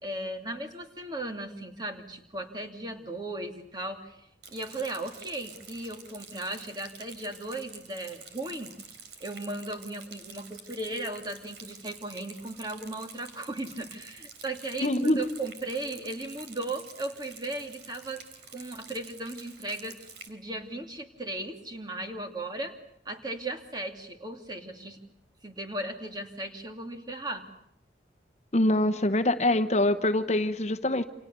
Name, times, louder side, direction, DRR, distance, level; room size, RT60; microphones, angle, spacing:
voice 1, 0.0-8.7 9.2-18.2 18.5-22.8 23.0-25.0 25.4-27.5, right 2 dB, 25° right, 4 dB, 2.7 m, -36 dB
Rain, 4.4-20.3, right 5 dB, 75° right, 3.7 m, -48 dB
voice 2, 14.8-15.2 28.5-31.0, left 1 dB, 40° left, 9 dB, 1.1 m, -24 dB
29.5 x 28.0 x 6.9 m, 0.74 s
head